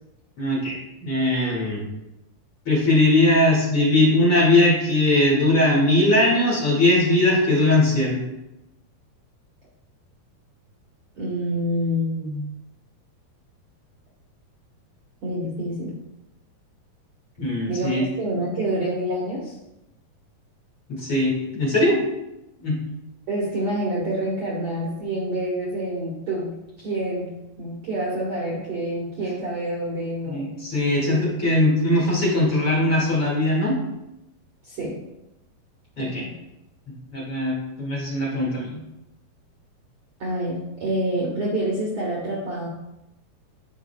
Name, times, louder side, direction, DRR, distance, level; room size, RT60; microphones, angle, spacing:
voice 1, 0.4-1.8 2.7-8.2 17.4-18.0 20.9-22.0 22.6-22.8 30.3-33.8 36.0-36.3 37.1-38.8, left 1 dB, 40° left, -6 dB, 2.2 m, -20 dB
voice 2, 11.1-12.5 15.2-16.0 17.7-19.5 23.3-30.5 31.1-31.3 34.6-35.0 36.0-36.3 40.2-42.7, right 1 dB, 90° right, -4 dB, 1.2 m, -27 dB
14.5 x 5.1 x 2.3 m, 0.92 s
omnidirectional pair, 4.8 m